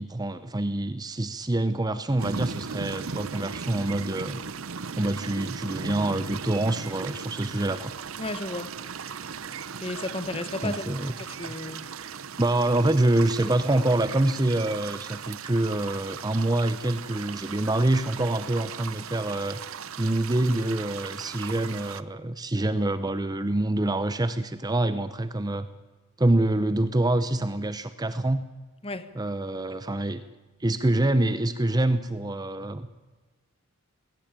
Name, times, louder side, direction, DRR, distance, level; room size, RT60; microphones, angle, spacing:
voice 1, 0.0-4.4 5.0-7.9 10.6-11.1 12.4-19.6 20.0-25.7 26.2-28.4 29.1-30.2 30.6-32.9, right 1 dB, 15° right, 13 dB, 0.6 m, -26 dB
sound 1, 2.2-22.0, right 6 dB, 65° right, 0.8 m, -37 dB
voice 2, 8.2-8.7 9.8-10.9 11.4-11.8 28.8-29.1, left 2 dB, 25° left, 12 dB, 1.2 m, -33 dB
19.5 x 17.5 x 9.0 m, 1.2 s
head